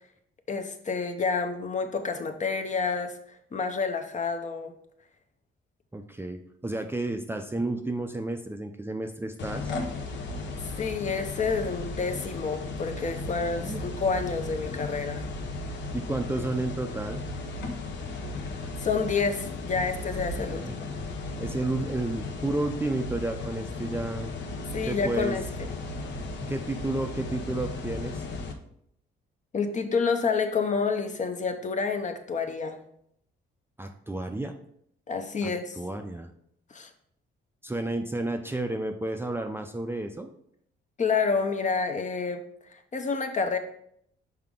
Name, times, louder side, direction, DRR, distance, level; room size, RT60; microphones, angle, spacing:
voice 1, 0.5-3.2 3.5-4.7 10.8-15.3 18.8-20.8 24.7-25.7 29.5-32.8 35.1-35.8 36.7-36.9 41.0-42.4 42.7-43.6, left 5 dB, 40° left, 7 dB, 0.8 m, -29 dB
voice 2, 5.9-9.7 13.6-13.8 15.4-15.5 15.9-17.2 20.4-20.8 21.4-24.3 24.9-25.4 26.1-28.2 33.8-34.6 35.4-36.3 37.6-40.3, right 2 dB, 10° right, 5 dB, 0.5 m, -32 dB
sound 1, 9.4-28.5, left 3 dB, 65° left, 0.9 m, -35 dB
5.8 x 4.8 x 3.6 m, 0.70 s
cardioid pair, 90°, 20 cm